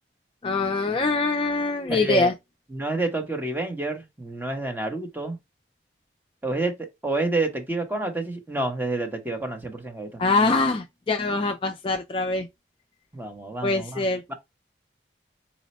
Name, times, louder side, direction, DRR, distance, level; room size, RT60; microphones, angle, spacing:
voice 1, 0.4-2.3 10.2-12.5 13.6-14.2, left 3 dB, 30° left, 0.3 m, -23 dB
voice 2, 1.9-2.3 2.7-5.4 6.4-6.7 7.0-10.1 13.1-14.0 14.3-14.4, right 2 dB, 10° right, 0.7 m, -28 dB
4.1 x 2.1 x 4.1 m
head